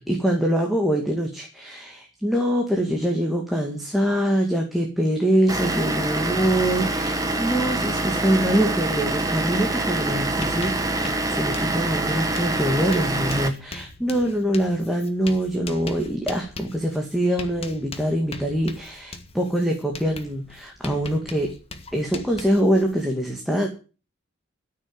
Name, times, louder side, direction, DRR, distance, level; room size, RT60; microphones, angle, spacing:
voice 1, 0.0-21.5 21.9-23.7, right 1 dB, ahead, 1 dB, 2.1 m, -24 dB
Vehicle / Engine, 5.5-13.5, right 2 dB, 15° right, 1.4 m, -25 dB
Writing, 10.1-23.0, left 3 dB, 30° left, 1.5 m, -41 dB
13.0 x 6.6 x 9.5 m, 0.36 s
head